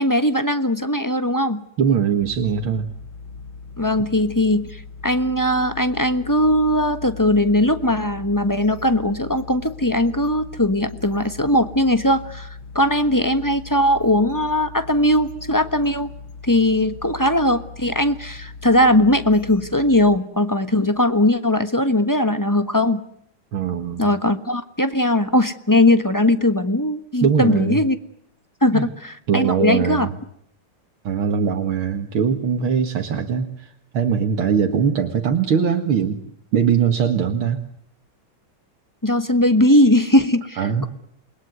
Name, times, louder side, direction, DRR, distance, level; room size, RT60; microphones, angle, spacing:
voice 1, 0.0-1.6 3.8-12.5 12.7-16.1 16.5-23.0 24.0-28.0 28.6-30.1 39.0-40.9, left 1 dB, 10° left, 10 dB, 1.0 m, -19 dB
voice 2, 1.8-2.9 23.5-24.1 27.2-27.8 28.7-28.9 29.3-30.1 31.0-36.2 36.5-37.6 40.6-40.9, right 7 dB, 80° right, 4 dB, 2.5 m, -21 dB
sound 1, 2.2-20.2, left 4 dB, 75° left, 2.1 m, -39 dB
29.0 x 21.5 x 9.5 m, 0.72 s
omnidirectional pair, 2.2 m